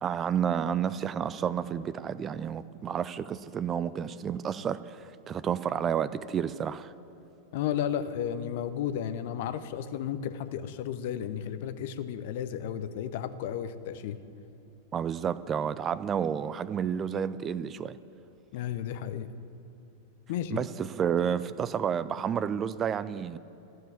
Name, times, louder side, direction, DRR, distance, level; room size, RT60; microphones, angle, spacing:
voice 1, 0.0-6.9 14.9-18.0 20.5-23.4, right 8 dB, 25° right, 16 dB, 0.4 m, -30 dB
voice 2, 7.5-14.2 18.5-19.3 20.3-20.7, left 9 dB, 50° left, 12 dB, 0.7 m, -33 dB
14.5 x 7.7 x 8.8 m, 2.9 s
figure-of-eight pair, 90°, 0 cm